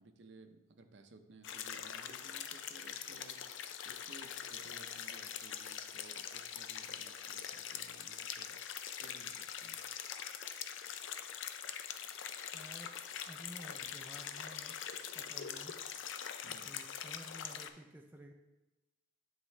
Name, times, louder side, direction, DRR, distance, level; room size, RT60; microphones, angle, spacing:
voice 1, 0.0-3.6 3.8-8.6 9.0-9.8 16.4-16.7, right 2 dB, 65° right, 7 dB, 0.6 m, -58 dB
sound 1, 1.4-17.7, left 8 dB, 75° left, 0.4 m, -43 dB
voice 2, 12.5-12.9 13.3-14.8 15.1-15.8 16.5-18.3, right 1 dB, 10° right, 2 dB, 0.4 m, -53 dB
10.5 x 3.7 x 3.2 m, 1.0 s
head